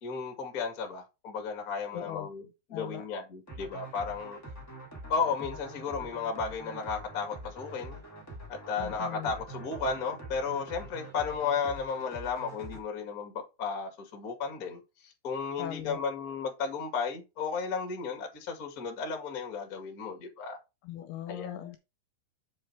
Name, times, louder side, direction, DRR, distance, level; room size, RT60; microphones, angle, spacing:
voice 1, 0.0-4.4 5.1-8.0 8.5-20.6 21.3-21.8, left 5 dB, 40° left, 1.3 m, -34 dB
voice 2, 1.9-2.3 2.7-3.0 8.8-9.3 15.6-16.0 20.8-21.8, left 12 dB, 80° left, 2.4 m, -40 dB
sound 1, 3.5-12.8, right 1 dB, 5° left, 1.5 m, -45 dB
7.6 x 4.5 x 4.5 m
omnidirectional pair, 5.1 m